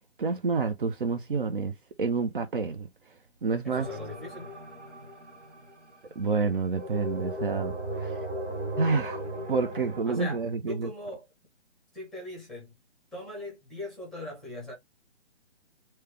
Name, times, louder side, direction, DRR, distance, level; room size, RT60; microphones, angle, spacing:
voice 1, 0.2-1.7 2.0-2.9 3.4-3.9 6.2-8.1 8.8-9.2 9.5-10.9, right 4 dB, 50° right, 0.7 m, -28 dB
voice 2, 3.6-4.6 10.0-11.3 11.9-12.8 13.1-14.7, left 2 dB, ahead, 0.9 m, -40 dB
sound 1, 3.7-6.1 6.7-10.0, equal, 90° right, 1.1 m, -36 dB
3.2 x 2.9 x 3.2 m
figure-of-eight pair, 140°, 34 cm